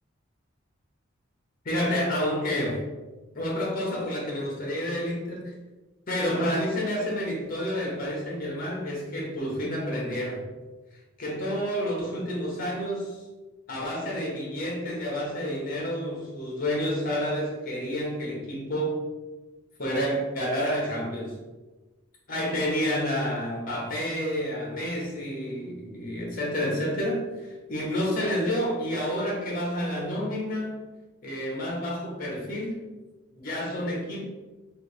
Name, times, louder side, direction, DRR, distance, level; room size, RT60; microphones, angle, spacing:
voice 1, 1.6-2.8 3.3-5.5 6.1-10.4 11.2-13.2 13.7-19.0 19.8-21.3 22.3-30.8 31.2-32.8 33.3-34.3, equal, 45° left, -2 dB, 1.0 m, -29 dB
3.3 x 2.6 x 3.2 m, 1.2 s
head